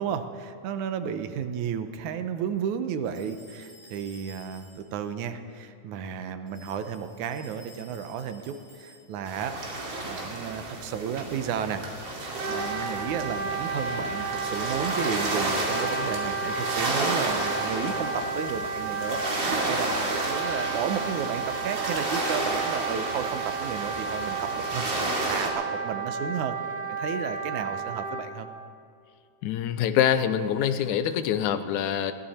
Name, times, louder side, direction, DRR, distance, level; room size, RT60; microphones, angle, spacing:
voice 1, 0.0-9.6 10.0-11.8 12.5-26.6 26.9-28.5, right 8 dB, 80° right, 9 dB, 2.2 m, -33 dB
sound 1, 3.0-5.0 6.5-9.3, left 1 dB, 30° left, 5.3 m, -53 dB
sound 2, 9.3-25.5, right 2 dB, 40° right, 3.0 m, -31 dB
Wind instrument woodwind instrument, 12.4-28.3, right 4 dB, 55° right, 2.1 m, -32 dB
voice 2, 29.4-32.1, left 9 dB, 85° left, 11 dB, 2.1 m, -25 dB
21.0 x 15.5 x 4.3 m, 2.4 s
omnidirectional pair, 3.4 m